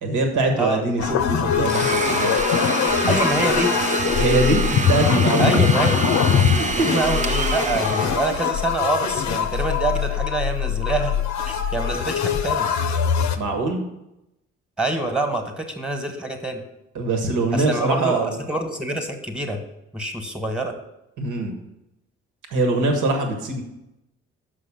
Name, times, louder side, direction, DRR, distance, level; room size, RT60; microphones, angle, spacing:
voice 1, 0.0-2.4 4.2-5.8 6.5-6.9 13.3-13.8 16.9-18.4 21.2-21.6 22.5-23.6, right 2 dB, 60° right, 4 dB, 1.5 m, -23 dB
sound 1, 1.0-13.4, left 7 dB, 55° left, 0.7 m, -22 dB
Domestic sounds home sounds, 1.7-8.7, right 3 dB, 20° right, 0.8 m, -26 dB
voice 2, 3.1-3.7 5.4-6.0 6.9-11.1 11.5-12.7 14.8-16.6 17.5-19.6 19.9-20.7, right 2 dB, 5° right, 5 dB, 1.5 m, -26 dB
6.4 x 5.1 x 6.9 m, 0.90 s
hypercardioid pair, 45°, 34 cm